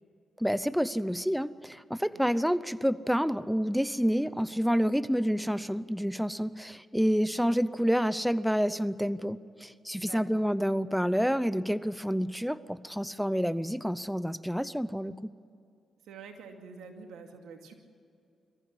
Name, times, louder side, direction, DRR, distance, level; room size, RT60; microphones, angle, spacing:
voice 1, 0.4-15.1, equal, ahead, 16 dB, 0.7 m, -28 dB
voice 2, 10.0-10.4 16.0-17.7, right 5 dB, 90° right, 4 dB, 2.4 m, -47 dB
23.0 x 14.5 x 9.9 m, 2.4 s
supercardioid pair, 60°, 0 cm